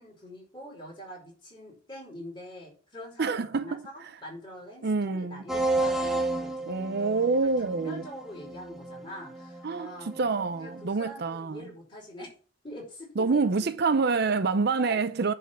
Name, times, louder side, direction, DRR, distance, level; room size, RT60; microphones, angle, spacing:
voice 1, 0.0-6.9 7.4-10.2 10.6-12.3 12.6-13.7 14.8-15.0, equal, 25° left, 5.4 m, -44 dB
voice 2, 3.2-3.8 4.8-5.4 6.7-8.0 9.6-9.9 10.2-11.6 13.2-15.3, right 4 dB, 50° right, 0.5 m, -26 dB
sound 1, 5.5-10.8, right 2 dB, ahead, 1.0 m, -32 dB
10.0 x 4.3 x 7.6 m
head